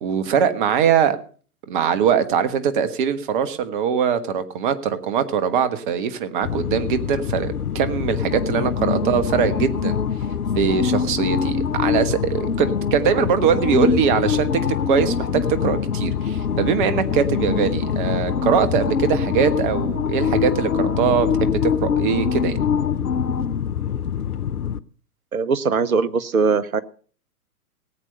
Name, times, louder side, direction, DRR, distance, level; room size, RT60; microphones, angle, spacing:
voice 1, 0.0-1.2 1.7-10.0 10.5-22.6, right 7 dB, 35° right, 11 dB, 1.3 m, -22 dB
sound 1, 6.4-24.8, left 7 dB, 75° left, 0.8 m, -24 dB
voice 2, 25.3-26.8, right 5 dB, 65° right, 16 dB, 1.1 m, -21 dB
18.5 x 8.2 x 5.5 m, 0.42 s
figure-of-eight pair, 115°, 46 cm